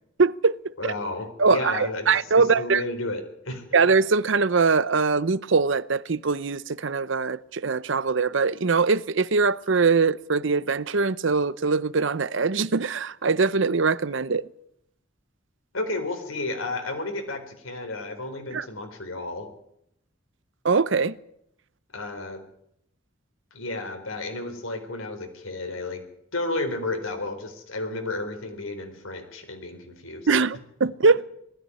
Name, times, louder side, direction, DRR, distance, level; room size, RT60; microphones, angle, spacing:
voice 1, 0.2-0.6 0.8-0.9 1.4-2.8 3.7-14.5 18.5-18.7 20.6-21.2 30.3-31.2, right 4 dB, 65° right, 0.7 m, -22 dB
voice 2, 0.8-2.1 2.6-3.6 15.7-19.5 21.9-22.4 23.5-26.0 26.3-30.3 31.0-31.1, left 2 dB, 85° left, 4.0 m, -32 dB
19.5 x 14.5 x 9.7 m
head